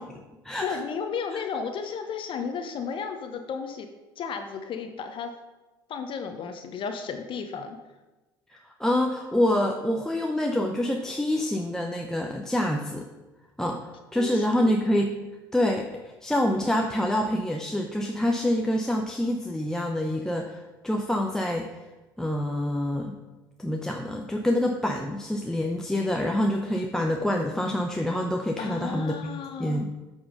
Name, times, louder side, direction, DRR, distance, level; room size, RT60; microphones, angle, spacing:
voice 1, 0.0-0.8 1.3-1.4 8.5-13.1 13.6-15.1 15.5-21.7 22.2-23.2 23.6-29.9, left 1 dB, 5° left, 1 dB, 0.7 m, -27 dB
voice 2, 0.6-3.9 4.2-5.3 5.9-7.8 14.1-14.4 28.6-29.9, left 6 dB, 45° left, 6 dB, 0.9 m, -33 dB
7.9 x 5.5 x 5.3 m, 1.1 s
hypercardioid pair, 65°, 12 cm